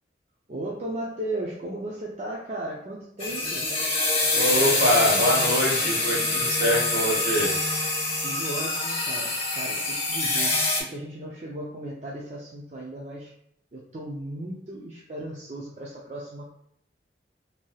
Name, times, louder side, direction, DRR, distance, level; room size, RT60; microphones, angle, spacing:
voice 1, 0.5-3.7 8.2-13.3 13.7-16.5, right 1 dB, 40° right, -4 dB, 0.4 m, -36 dB
sound 1, 3.2-10.8, left 2 dB, 30° left, 0.7 m, -25 dB
voice 2, 4.3-7.5, equal, 65° right, -5 dB, 1.5 m, -24 dB
3.2 x 2.7 x 2.2 m, 0.70 s
head